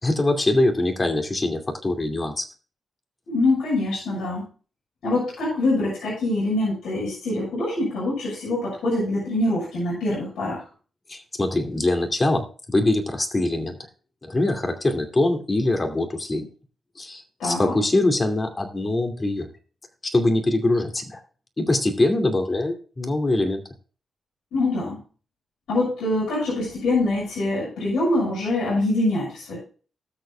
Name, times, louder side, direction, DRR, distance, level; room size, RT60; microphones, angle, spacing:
voice 1, 0.0-2.4 11.1-13.8 14.2-16.5 17.0-19.5 20.0-21.2 21.6-23.6, left 2 dB, 30° left, 5 dB, 2.5 m, -23 dB
voice 2, 3.3-4.4 5.0-10.6 17.4-17.8 24.5-25.0 25.7-29.6, left 2 dB, 85° left, -6 dB, 6.2 m, -24 dB
19.5 x 6.6 x 2.3 m, 0.37 s
cardioid pair, 65°, 0 cm